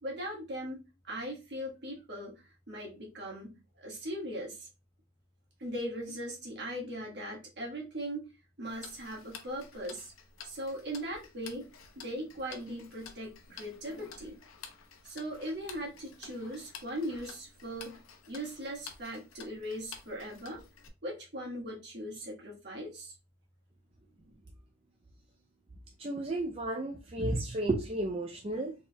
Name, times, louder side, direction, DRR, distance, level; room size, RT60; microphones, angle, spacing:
voice 1, 0.0-4.7 5.6-8.2 8.6-10.1 10.4-11.7 12.0-14.4 15.0-18.0 18.3-20.6 21.0-23.1 24.2-24.3, equal, 55° right, -2 dB, 1.7 m, -39 dB
Tick-tock, 8.7-20.9, left 6 dB, 90° left, 0.7 m, -51 dB
voice 2, 26.0-28.7, right 2 dB, 30° right, 0 dB, 0.5 m, -32 dB
4.3 x 3.6 x 2.2 m, 0.27 s
head